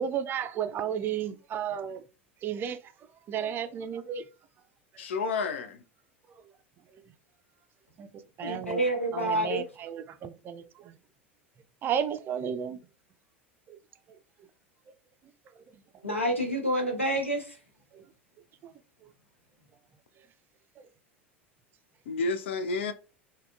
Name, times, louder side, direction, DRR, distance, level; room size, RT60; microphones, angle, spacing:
voice 1, 0.0-2.0 2.4-4.3 4.9-5.1 6.3-6.5 6.9-7.1 8.0-8.1 8.4-8.8 9.1-11.0 11.8-12.8 13.7-13.8 14.1-14.2 15.6-15.7 17.9-18.1 18.6-18.7 19.0-19.1 20.8-20.9, right 8 dB, 30° right, 0.3 m, -34 dB
voice 2, 5.0-5.8 22.1-22.9, left 4 dB, 65° left, 0.4 m, -30 dB
voice 3, 8.4-9.6 16.0-17.6, right 1 dB, 90° left, 0.8 m, -28 dB
3.4 x 2.2 x 2.3 m
figure-of-eight pair, 80°, 7 cm